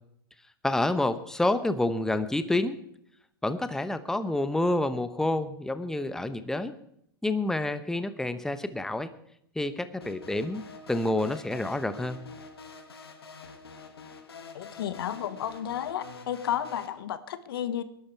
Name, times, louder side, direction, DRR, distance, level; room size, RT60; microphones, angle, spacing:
voice 1, 0.6-2.8 3.4-6.7 7.2-9.1 9.5-10.6 10.9-12.2, left 2 dB, 5° left, 12 dB, 1.0 m, -28 dB
sound 1, 10.0-16.9, left 5 dB, 85° left, 2.1 m, -46 dB
voice 2, 14.5-17.8, left 10 dB, 70° left, 13 dB, 1.3 m, -32 dB
20.0 x 11.5 x 4.6 m, 0.72 s
hypercardioid pair, 105°, 13 cm